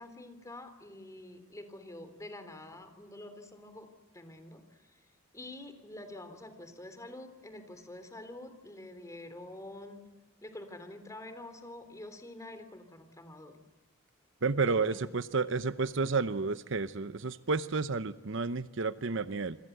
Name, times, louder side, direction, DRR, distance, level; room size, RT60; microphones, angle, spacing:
voice 1, 0.0-3.9 4.1-4.6 4.9-5.0 5.3-10.0 10.4-13.6 14.6-15.1, left 1 dB, 15° left, 9 dB, 3.4 m, -47 dB
voice 2, 14.4-19.6, right 4 dB, 65° right, 13 dB, 0.8 m, -31 dB
28.0 x 24.5 x 8.1 m, 1.1 s
head